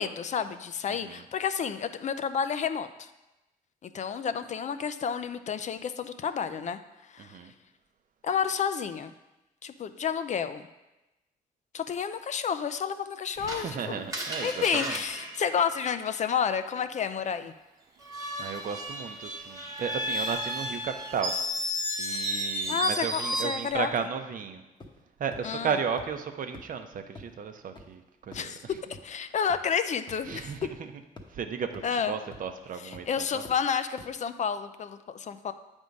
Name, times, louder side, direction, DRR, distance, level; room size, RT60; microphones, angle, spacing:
voice 1, 0.0-3.1 3.8-6.8 7.1-7.4 8.2-9.1 9.6-10.7 11.7-14.1 14.4-17.5 22.7-23.9 25.4-25.8 28.3-28.6 29.0-30.5 31.8-32.2 32.8-35.5, left 7 dB, 45° left, 11 dB, 0.4 m, -30 dB
voice 2, 7.2-7.5 13.4-15.0 18.4-21.3 22.0-24.6 25.2-28.5 30.3-30.6 31.3-33.1 33.3-33.4, right 6 dB, 55° right, 7 dB, 0.7 m, -34 dB
Screech, 13.5-16.3 18.0-23.7, equal, 20° right, 1.2 m, -33 dB
sound 1, 24.8-25.1 25.3-25.4 26.0-26.1 26.5-26.6 27.2-27.3 27.8-27.9 28.3-28.5 28.9-29.0 29.5-29.6 30.1-30.2 30.6-30.7 31.2-31.3 31.7-31.8 32.3-32.5 32.9-33.0 33.4-33.5 34.0-34.1, left 2 dB, 30° left, 0.9 m, -45 dB
8.0 x 3.6 x 5.2 m, 1.0 s
cardioid pair, 85°, 16 cm